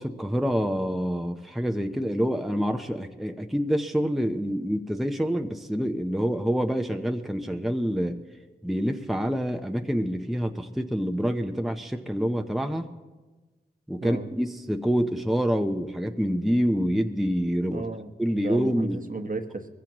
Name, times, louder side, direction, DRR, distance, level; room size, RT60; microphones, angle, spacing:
voice 1, 0.0-8.2 8.6-12.9 13.9-17.8 18.2-19.0, equal, ahead, 5 dB, 0.8 m, -27 dB
voice 2, 17.7-19.7, right 3 dB, 45° right, 7 dB, 1.1 m, -34 dB
21.5 x 15.0 x 3.0 m, 1.3 s
cardioid pair, 50°, 20 cm